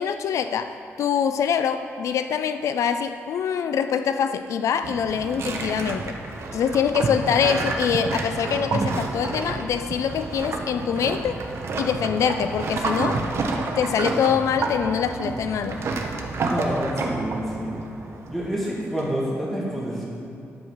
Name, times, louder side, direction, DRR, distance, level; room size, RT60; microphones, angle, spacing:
voice 1, 0.0-6.2 6.5-11.4 11.8-13.2 13.8-15.8, left 7 dB, 85° left, 9 dB, 0.4 m, -24 dB
sound 1, 4.8-19.0, right 3 dB, 60° right, 0.9 m, -29 dB
voice 2, 16.5-17.8 18.3-20.0, equal, 5° left, -6 dB, 2.2 m, -28 dB
11.0 x 4.7 x 6.9 m, 2.6 s
wide cardioid pair, 150°, 5 cm